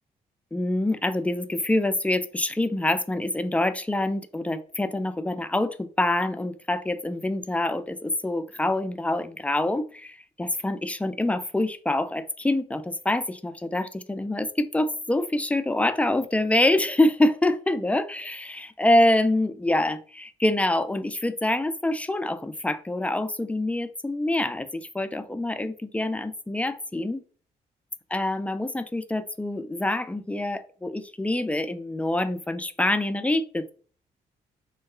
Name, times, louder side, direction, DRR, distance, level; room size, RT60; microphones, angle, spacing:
voice 1, 0.5-27.2 28.1-33.7, left 1 dB, 5° left, 11 dB, 0.3 m, -26 dB
3.6 x 2.2 x 2.3 m, 0.42 s
hypercardioid pair, 45°, 19 cm